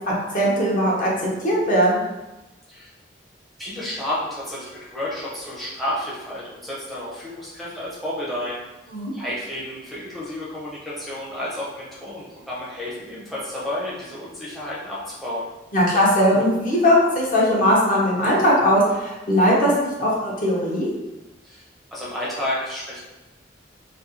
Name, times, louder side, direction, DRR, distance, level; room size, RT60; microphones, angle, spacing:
voice 1, 0.3-2.0 8.9-9.1 15.7-20.9, equal, 45° left, -5 dB, 0.7 m, -19 dB
voice 2, 3.6-8.6 9.1-15.5 21.4-21.6 21.9-23.0, left 1 dB, ahead, -8 dB, 0.5 m, -31 dB
2.4 x 2.3 x 2.8 m, 1.0 s
head